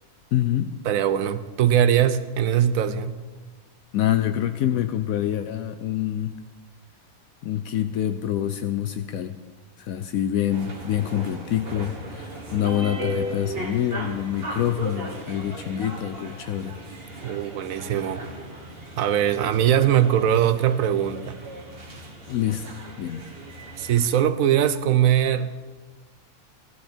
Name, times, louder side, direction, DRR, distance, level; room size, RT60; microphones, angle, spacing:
voice 1, 0.3-0.7 3.9-6.3 7.4-9.3 9.8-16.8 17.1-17.2 22.3-22.7 23.0-23.2, left 11 dB, 75° left, 1.0 m, -26 dB
voice 2, 0.8-3.2 17.2-18.2 19.0-21.4 23.8-25.6, right 10 dB, 75° right, 1.1 m, -21 dB
sound 1, 10.5-24.1, right 1 dB, 40° right, 1.8 m, -37 dB
16.0 x 12.5 x 4.4 m
omnidirectional pair, 1.5 m